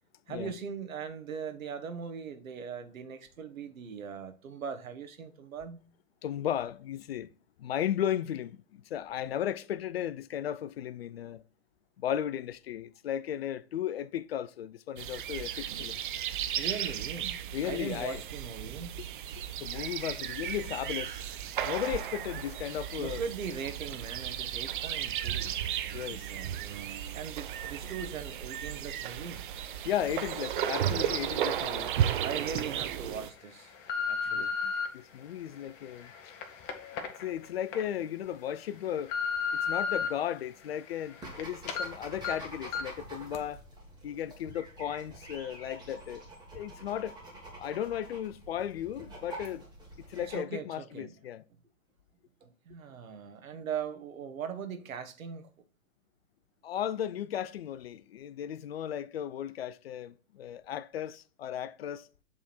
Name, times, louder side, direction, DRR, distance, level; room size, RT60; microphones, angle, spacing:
voice 1, 0.3-5.8 16.6-18.9 23.0-25.5 25.8-26.5 27.1-29.5 32.2-33.7 34.1-34.5 50.3-51.2 52.4-55.4, right 6 dB, 75° right, 1.3 m, -40 dB
voice 2, 6.2-7.3 7.6-11.4 12.0-16.0 17.5-18.2 19.4-21.3 21.6-23.2 25.9-26.3 29.8-31.9 34.3-36.3 36.9-39.1 39.6-43.6 44.0-46.2 46.5-47.2 47.6-49.6 50.1-51.4 56.6-62.1, left 10 dB, 50° left, 0.4 m, -35 dB
sound 1, 15.0-33.3, right 10 dB, 40° right, 0.5 m, -34 dB
sound 2, 31.6-31.7 32.3-32.6 33.2-34.9 35.5-37.8 38.3-38.4 38.8-40.1 40.5-41.4 41.7-41.9 42.2-42.3 42.7-43.0 43.3-43.4, left 6 dB, 25° left, 1.0 m, -34 dB
sound 3, 41.2-50.4, right 1 dB, 10° right, 1.8 m, -47 dB
7.3 x 3.7 x 4.3 m
hypercardioid pair, 130°, 41 cm